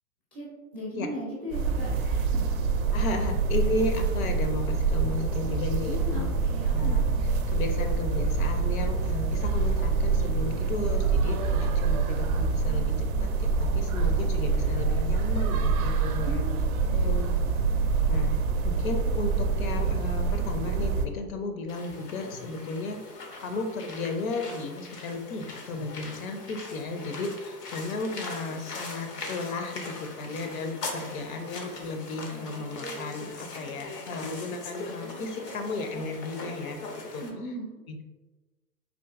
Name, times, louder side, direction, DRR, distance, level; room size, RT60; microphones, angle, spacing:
voice 1, 0.7-2.4 5.8-7.0 16.2-17.1 37.2-37.7, left 1 dB, 5° left, -6 dB, 0.4 m, -38 dB
sound 1, 1.5-21.1, right 4 dB, 60° right, 0.5 m, -26 dB
voice 2, 2.9-6.3 6.7-7.0 7.5-16.5 16.9-17.3 18.1-18.3 18.6-23.0 23.4-36.8 37.1-37.2 37.9-38.0, left 3 dB, 60° left, 5 dB, 0.6 m, -34 dB
sound 2, 21.7-37.3, left 3 dB, 90° left, 0.8 m, -41 dB
3.7 x 2.5 x 2.4 m, 1.2 s
hypercardioid pair, 120°, 47 cm